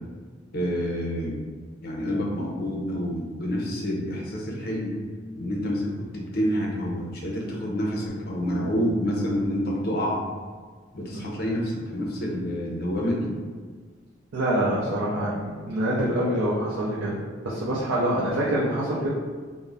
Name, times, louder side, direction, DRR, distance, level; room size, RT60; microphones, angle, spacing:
voice 1, 0.5-1.4 1.8-5.0 5.4-10.2 10.9-13.3, equal, 50° left, -2 dB, 0.6 m, -28 dB
voice 2, 14.3-17.2 17.4-19.1, right 1 dB, 80° right, -7 dB, 0.5 m, -25 dB
2.4 x 2.1 x 3.3 m, 1.5 s
head